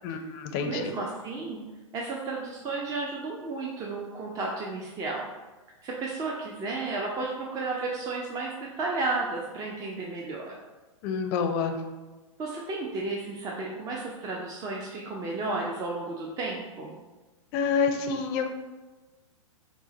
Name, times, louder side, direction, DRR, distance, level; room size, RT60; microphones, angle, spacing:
voice 1, 0.0-0.9 11.0-11.8 17.5-18.5, left 5 dB, 35° left, 6 dB, 0.5 m, -28 dB
voice 2, 0.7-1.6 1.9-5.3 5.8-10.6 12.4-17.0, right 3 dB, 20° right, -2 dB, 0.4 m, -33 dB
4.4 x 2.1 x 3.9 m, 1.2 s
hypercardioid pair, 115°, 17 cm